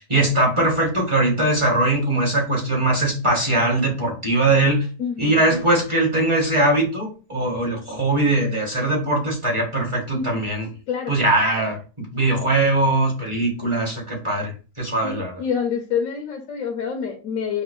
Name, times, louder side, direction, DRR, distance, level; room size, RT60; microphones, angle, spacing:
voice 1, 0.1-4.9 5.2-10.7 11.1-14.5 14.8-15.3, right 2 dB, 25° right, -2 dB, 0.9 m, -21 dB
voice 2, 5.0-5.4 10.1-10.4 10.9-11.2 15.0-17.6, left 7 dB, 70° left, 1 dB, 1.0 m, -27 dB
5.2 x 2.2 x 2.3 m, 0.34 s
omnidirectional pair, 1.5 m